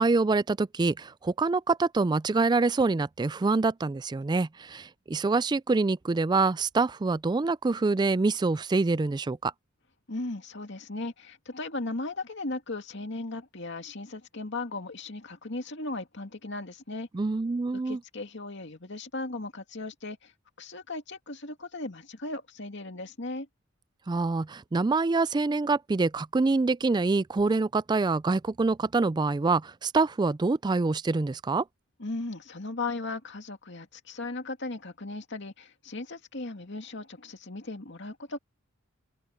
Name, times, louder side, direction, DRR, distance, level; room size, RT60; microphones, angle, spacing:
voice 1, 0.0-9.5 17.1-18.0 24.1-31.6, right 3 dB, 20° right, 0.3 m, -26 dB
voice 2, 10.1-17.1 17.7-20.3 20.6-23.5 32.0-38.4, left 2 dB, 60° left, 2.5 m, -37 dB
open air
head